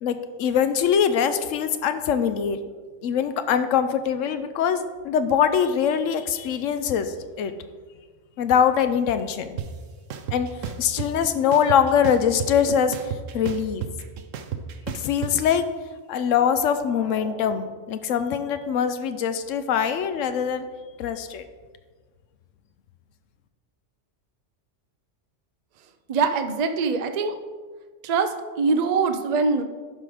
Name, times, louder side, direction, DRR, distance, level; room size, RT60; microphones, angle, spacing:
voice 1, 0.0-2.6 3.0-7.5 8.4-9.6 10.3-10.5 10.8-13.0 13.3-13.8 14.9-15.6 16.1-20.7 21.0-21.4, left 8 dB, 85° left, 10 dB, 1.0 m, -23 dB
sound 1, 9.6-9.7 10.1-11.1 11.5-12.6 12.9-15.3, right 9 dB, 90° right, 1.0 m, -31 dB
sound 2, 16.6-18.2, equal, 45° left, 2.3 m, -43 dB
voice 2, 26.1-27.3 28.0-28.3 28.6-29.6, right 4 dB, 50° right, 8 dB, 0.5 m, -23 dB
11.0 x 3.8 x 4.9 m, 1.4 s
omnidirectional pair, 1.3 m